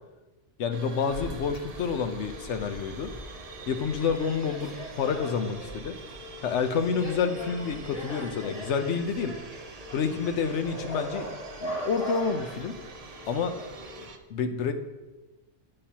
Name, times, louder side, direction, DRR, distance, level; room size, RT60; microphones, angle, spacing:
voice 1, 0.6-3.1 3.7-5.9 6.4-9.4 9.9-11.3 11.6-12.8 13.3-13.6 14.3-14.7, left 6 dB, 70° left, 8 dB, 1.0 m, -28 dB
sound 1, 0.7-14.2, right 4 dB, 40° right, 0.6 m, -47 dB
sound 2, 1.1-14.1, equal, 55° left, 2.3 m, -40 dB
10.5 x 8.6 x 2.8 m, 1.1 s
omnidirectional pair, 1.3 m